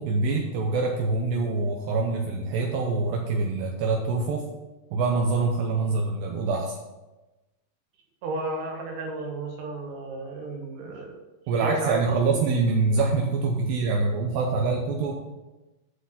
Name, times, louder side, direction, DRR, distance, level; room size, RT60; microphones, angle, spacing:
voice 1, 0.0-4.5 4.9-6.8 11.5-15.1, right 3 dB, 80° right, 1 dB, 2.5 m, -25 dB
voice 2, 8.2-11.2 11.6-12.4, right 2 dB, 55° right, 1 dB, 2.3 m, -33 dB
8.5 x 5.8 x 5.8 m, 1.1 s
omnidirectional pair, 4.4 m